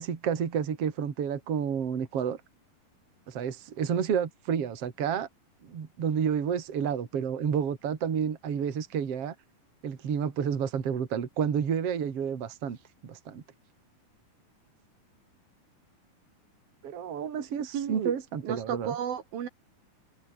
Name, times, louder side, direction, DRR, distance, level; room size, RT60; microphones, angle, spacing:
voice 1, 0.0-2.4 3.3-5.3 5.6-9.3 9.8-12.8 13.0-13.4 16.8-18.9, right 7 dB, 45° right, 3.2 m, -30 dB
voice 2, 17.7-18.1 18.4-19.5, right 9 dB, 75° right, 4.0 m, -33 dB
omnidirectional pair, 4.2 m